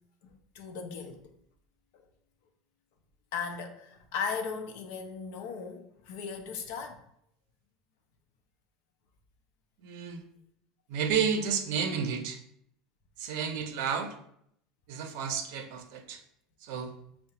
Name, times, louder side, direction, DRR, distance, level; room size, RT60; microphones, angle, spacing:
voice 1, 0.2-1.3 1.9-2.0 3.3-7.0 13.5-13.7, left 5 dB, 70° left, 0.5 m, -37 dB
voice 2, 9.8-10.2 10.9-12.4 13.2-14.1 14.9-16.2 16.6-16.9, right 6 dB, 65° right, 0.5 m, -31 dB
5.5 x 2.1 x 2.8 m
cardioid pair, 160°, 0 cm